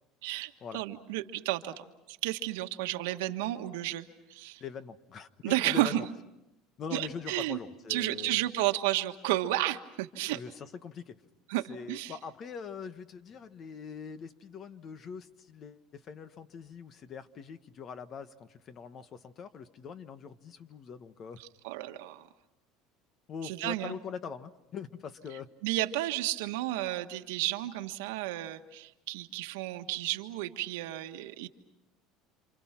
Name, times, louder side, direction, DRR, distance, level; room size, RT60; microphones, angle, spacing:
voice 1, 0.2-4.6 5.4-6.1 6.9-7.6 7.9-10.4 11.5-12.1 21.4-22.3 23.4-23.9 25.6-31.5, right 16 dB, 90° right, 6 dB, 1.5 m, -32 dB
voice 2, 4.6-6.1 6.8-8.4 10.3-11.2 11.7-21.4 23.3-25.5, left 6 dB, 40° left, 11 dB, 1.4 m, -43 dB
28.5 x 27.5 x 6.0 m, 0.93 s
supercardioid pair, 120°, 0 cm